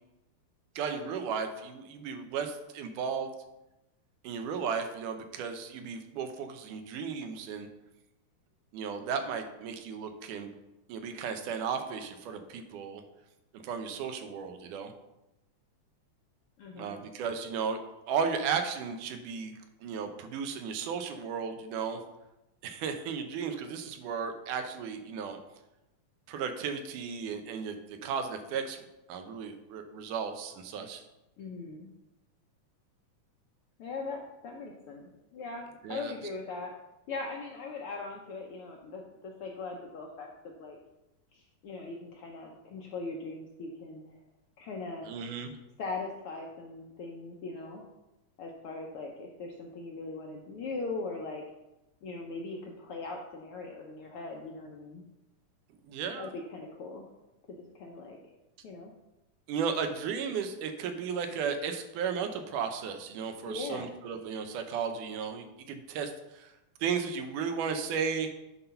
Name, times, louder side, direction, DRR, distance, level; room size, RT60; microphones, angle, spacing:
voice 1, 0.8-3.3 4.2-7.7 8.7-10.5 10.9-13.0 13.5-14.9 16.7-17.8 18.1-19.5 19.8-22.0 22.6-25.4 26.3-31.0 35.8-36.1 45.0-45.6 55.8-56.3 59.5-66.5 66.8-68.3, right 6 dB, 85° right, 7 dB, 2.4 m, -35 dB
voice 2, 16.6-17.0 31.4-31.9 33.8-36.7 37.1-40.8 41.3-44.2 44.6-45.2 45.8-47.8 48.4-51.4 52.0-55.0 56.2-57.1 57.5-58.2 58.6-58.9 63.5-63.9, left 3 dB, 80° left, 0 dB, 1.2 m, -40 dB
9.7 x 4.0 x 5.7 m, 0.94 s
omnidirectional pair, 3.5 m